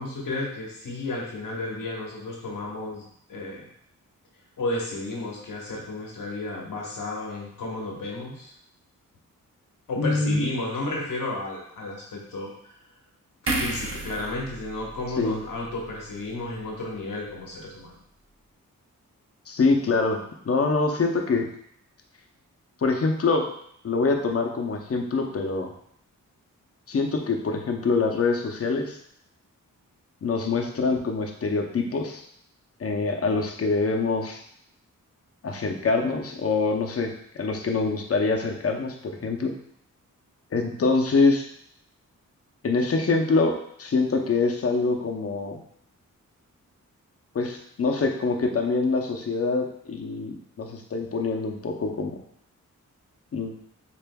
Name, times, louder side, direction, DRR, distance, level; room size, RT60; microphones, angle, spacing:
voice 1, 0.0-3.6 4.6-8.5 9.9-12.5 13.4-18.0, left 2 dB, 85° left, -2 dB, 1.2 m, -33 dB
voice 2, 10.0-10.5 15.2-15.4 19.5-20.2 20.4-21.5 22.8-23.5 23.8-25.7 26.9-29.0 30.2-32.2 32.8-34.4 35.4-37.1 37.4-39.5 40.5-41.4 42.6-45.6 47.3-52.2 53.3-53.6, left 3 dB, 45° left, 2 dB, 0.7 m, -25 dB
sound 1, 13.5-16.8 17.2-17.4, right 2 dB, 45° right, 0.8 m, -34 dB
6.8 x 2.5 x 2.3 m, 0.69 s
cardioid pair, 80°, 32 cm